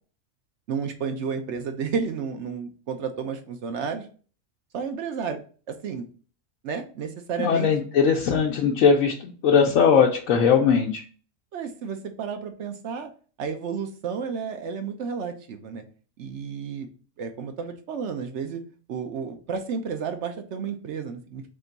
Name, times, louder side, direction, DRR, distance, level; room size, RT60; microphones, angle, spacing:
voice 1, 0.7-4.1 4.7-5.4 5.7-6.0 6.6-7.7 11.5-13.1 13.4-15.8 16.2-16.9 17.2-18.6 18.9-21.4, right 6 dB, 65° right, 7 dB, 0.9 m, -31 dB
voice 2, 7.4-11.0, left 6 dB, 75° left, -1 dB, 1.0 m, -20 dB
3.7 x 3.4 x 4.0 m, 0.40 s
omnidirectional pair, 1.4 m